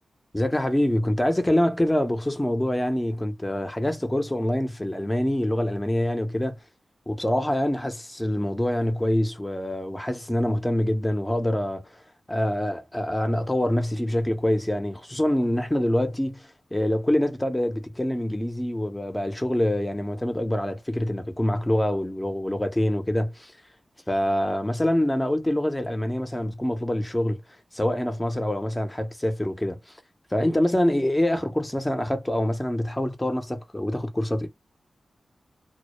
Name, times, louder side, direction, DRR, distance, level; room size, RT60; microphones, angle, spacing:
voice 1, 0.3-6.6 7.1-12.0 12.3-23.5 24.1-27.4 27.7-30.0 30.3-34.5, left 1 dB, 15° left, 0.6 m, -25 dB
2.0 x 2.0 x 3.0 m
cardioid pair, 60°, 0 cm